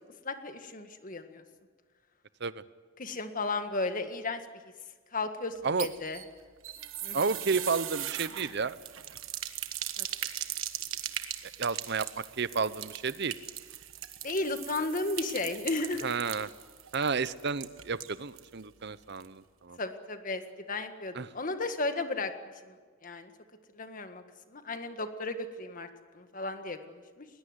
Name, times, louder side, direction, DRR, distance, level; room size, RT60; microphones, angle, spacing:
voice 1, 0.2-1.4 3.0-4.4 5.1-6.2 7.0-7.2 10.0-10.1 14.2-16.1 19.8-20.4 20.7-22.3 22.7-22.8 23.0-23.3 23.7-24.2 24.5-25.9 26.1-27.3, left 3 dB, 40° left, 8 dB, 1.8 m, -34 dB
sound 1, 5.6-18.5 18.8-18.9 19.2-19.3, right 12 dB, 80° right, 1.4 m, -39 dB
voice 2, 7.1-8.8 11.6-13.4 16.0-16.5 16.9-19.8 21.1-21.3, right 5 dB, 55° right, 16 dB, 0.8 m, -31 dB
20.5 x 20.0 x 9.7 m, 1.5 s
head